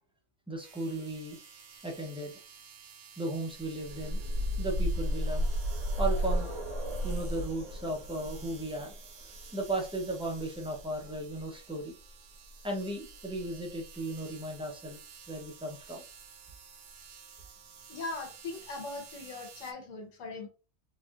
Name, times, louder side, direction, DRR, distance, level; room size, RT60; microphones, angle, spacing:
voice 1, 0.5-1.4 1.8-2.3 3.2-4.2 4.6-5.5 6.0-6.5 7.0-9.0 9.5-12.0 12.6-15.0 15.3-16.0, right 2 dB, 5° right, 0 dB, 0.5 m, -36 dB
sound 1, 0.6-19.7, right 6 dB, 60° right, 0.8 m, -52 dB
sound 2, 3.6-11.4 12.5-12.6 13.0-13.1, equal, 85° right, 2.1 m, -33 dB
voice 2, 17.9-20.5, left 3 dB, 80° left, 3 dB, 1.3 m, -40 dB
4.1 x 2.6 x 2.4 m, 0.34 s
omnidirectional pair, 1.3 m